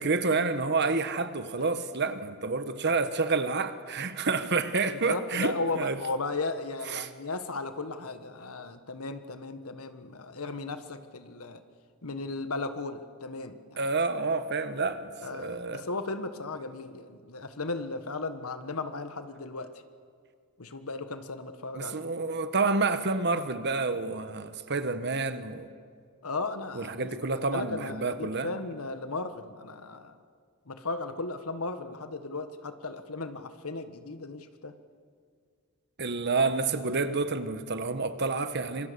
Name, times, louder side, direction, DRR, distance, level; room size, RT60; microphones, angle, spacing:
voice 1, 0.0-6.0 6.9-7.1 13.8-15.8 21.7-25.7 26.7-28.5 36.0-38.9, right 3 dB, 50° right, 10 dB, 1.3 m, -29 dB
voice 2, 5.1-11.6 12.0-13.8 15.2-19.8 20.6-22.1 26.2-30.2 30.7-34.7, left 3 dB, 90° left, 9 dB, 1.5 m, -36 dB
26.5 x 23.5 x 7.0 m, 2.1 s
head